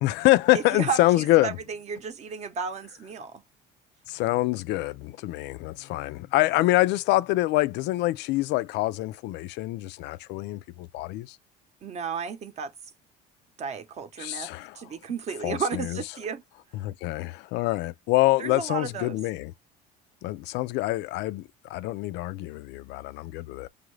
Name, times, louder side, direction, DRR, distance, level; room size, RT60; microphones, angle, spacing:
voice 1, 0.0-1.6 4.1-11.4 14.2-14.8 15.4-16.0 16.7-19.5 20.2-23.7, left 18 dB, 70° left, 0.4 m, -25 dB
voice 2, 0.5-3.4 11.8-12.7 13.6-14.5 14.7-16.4 18.4-19.2, right 6 dB, 40° right, 0.7 m, -33 dB
5.4 x 2.5 x 3.1 m
cardioid pair, 135°, 18 cm